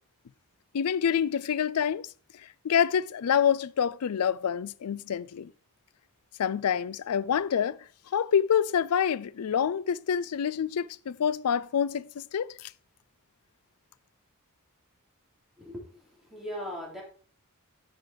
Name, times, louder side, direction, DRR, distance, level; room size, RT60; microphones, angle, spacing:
voice 1, 0.7-2.1 2.6-5.5 6.4-7.8 8.1-12.7, left 8 dB, 80° left, 0.4 m, -27 dB
voice 2, 15.6-16.0 16.3-17.0, equal, ahead, 3.4 m, -38 dB
7.8 x 6.4 x 4.7 m
head